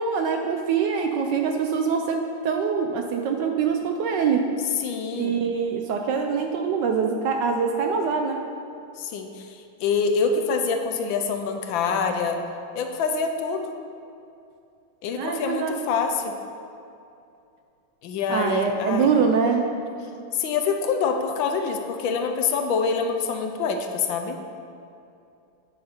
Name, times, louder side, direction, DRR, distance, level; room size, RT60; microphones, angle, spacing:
voice 1, 0.0-4.5 5.1-8.4 15.2-15.8 18.3-19.7, right 6 dB, 70° right, 4 dB, 1.1 m, -24 dB
voice 2, 4.8-5.3 9.0-12.4 12.7-13.8 15.0-16.3 18.0-19.1 20.3-24.4, left 5 dB, 75° left, 5 dB, 1.3 m, -26 dB
9.3 x 6.7 x 4.3 m, 2.6 s
omnidirectional pair, 2.3 m